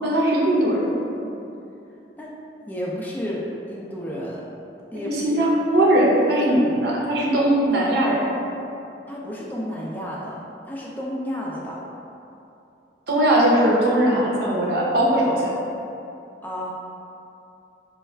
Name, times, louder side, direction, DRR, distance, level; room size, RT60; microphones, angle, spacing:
voice 1, 0.0-0.9 5.0-8.4 13.1-15.5, right 1 dB, 60° right, -4 dB, 0.7 m, -19 dB
voice 2, 2.2-4.5 4.9-5.5 9.1-11.8 16.4-16.7, equal, 10° left, -4 dB, 0.3 m, -32 dB
3.1 x 2.3 x 4.3 m, 2.7 s
head